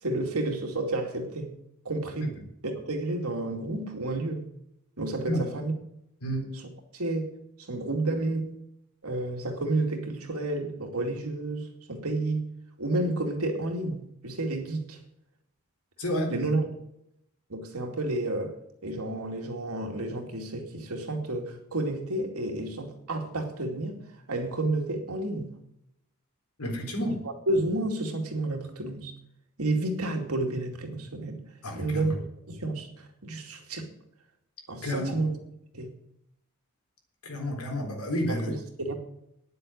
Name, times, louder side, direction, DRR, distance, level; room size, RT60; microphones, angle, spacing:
voice 1, 0.0-1.5 1.8-2.3 2.6-4.4 5.0-5.7 6.9-8.6 9.0-12.5 12.8-15.0 16.3-16.6 17.5-18.6 18.8-24.0 24.3-25.5 27.5-29.1 29.6-31.4 31.8-32.1 32.5-33.9 34.7-35.4 35.7-35.9 38.3-38.9, right 2 dB, 80° right, 2.5 m, -30 dB
voice 2, 16.0-16.3 26.6-27.2 31.6-32.1 34.8-35.2 37.2-38.5, equal, 85° left, 3.9 m, -30 dB
10.0 x 7.9 x 9.4 m
head